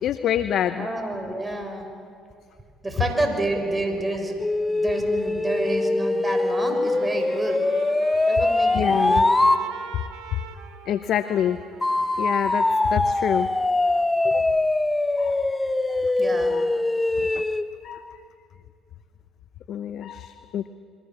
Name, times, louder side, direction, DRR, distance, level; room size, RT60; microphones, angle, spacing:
voice 1, 0.0-0.9 8.7-9.2 10.9-11.6 12.2-13.5 14.2-14.4 15.2-15.4 16.5-16.6 17.2-17.4 17.8-18.2 19.7-20.7, left 10 dB, 60° left, 11 dB, 0.8 m, -26 dB
voice 2, 0.7-1.9 2.8-4.3 4.7-7.6 8.3-9.3 10.3-10.4 16.2-16.6, right 1 dB, 20° right, 5 dB, 6.1 m, -28 dB
sound 1, 4.4-9.6 11.8-17.7, left 2 dB, 15° left, 1.4 m, -22 dB
Trumpet, 6.7-14.1, right 8 dB, 70° right, 1.9 m, -45 dB
29.0 x 23.5 x 7.6 m, 2.3 s
hypercardioid pair, 60°, 0 cm